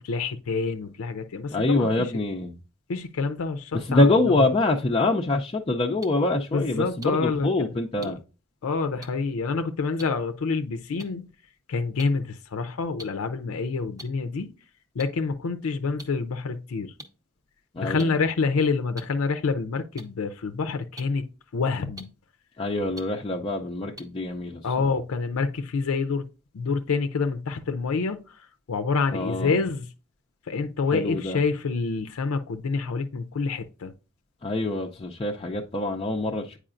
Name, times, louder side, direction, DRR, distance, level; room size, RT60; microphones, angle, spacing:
voice 1, 0.0-2.1 2.9-4.1 6.5-8.1 8.6-11.3 11.7-14.5 14.9-16.9 17.8-21.3 21.5-22.1 24.6-26.3 26.5-29.9 30.5-33.9, left 4 dB, 85° left, 0.5 m, -27 dB
voice 2, 1.5-2.6 3.7-8.2 17.7-18.2 22.6-24.6 29.1-29.6 30.9-31.4 34.4-36.6, left 2 dB, 25° left, 0.4 m, -25 dB
sound 1, 6.0-6.1 7.0-7.1 8.0-8.1 9.0-9.1 10.0-10.1 11.0-11.1 12.0-12.1 13.0-13.1 14.0-14.1 15.0-15.1 16.0-16.1 17.0-17.1 18.0-18.1 19.0-19.1 20.0-20.1 21.0-21.1 22.0-22.1 23.0-23.1 24.0-24.1, right 1 dB, 15° right, 0.7 m, -40 dB
8.7 x 4.8 x 2.5 m
head